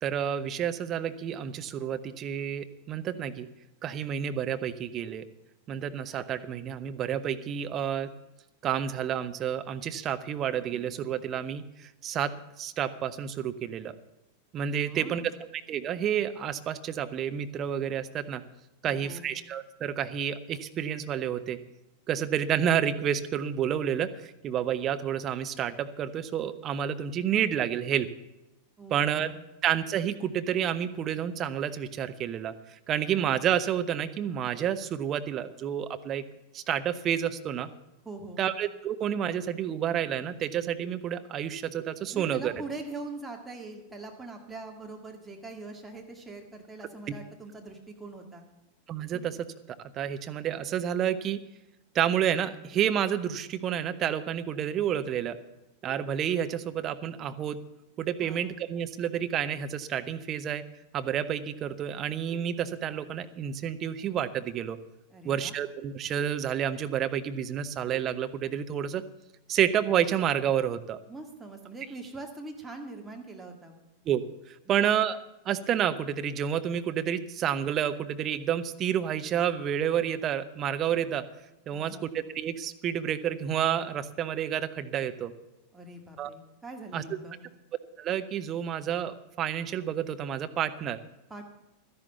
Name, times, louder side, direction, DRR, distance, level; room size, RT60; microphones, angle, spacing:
voice 1, 0.0-3.5 3.8-5.2 5.7-8.1 8.6-13.9 14.5-15.2 15.7-18.4 18.8-21.6 22.1-28.1 28.9-29.3 29.6-36.2 36.5-37.7 38.4-42.5 47.1-47.2 48.9-49.4 49.9-51.4 51.9-55.4 55.8-57.6 58.0-60.6 60.9-64.8 65.2-69.0 69.5-71.0 74.1-74.2 74.5-75.2 75.4-81.2 81.7-85.3 86.2-86.3 86.9-87.2 88.0-91.0, right 9 dB, 30° right, 10 dB, 0.9 m, -29 dB
voice 2, 14.7-15.3 18.8-19.4 28.8-29.4 38.0-38.4 42.1-48.5 49.1-49.2 58.2-58.6 65.1-65.6 71.1-73.8 81.7-82.1 85.7-87.4 91.3-91.5, right 2 dB, 10° right, 1 dB, 2.0 m, -43 dB
12.5 x 11.0 x 6.8 m, 0.95 s
figure-of-eight pair, 90°, 0 cm